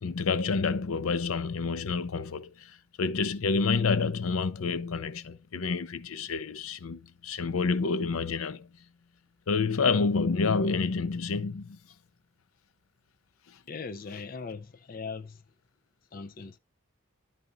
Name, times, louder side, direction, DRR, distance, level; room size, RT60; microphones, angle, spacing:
voice 1, 0.0-8.7 9.5-11.8 13.5-13.6, left 4 dB, 90° left, 0.6 m, -28 dB
voice 2, 13.7-15.4 16.1-16.6, left 4 dB, 45° left, 0.5 m, -39 dB
11.0 x 4.2 x 3.9 m
head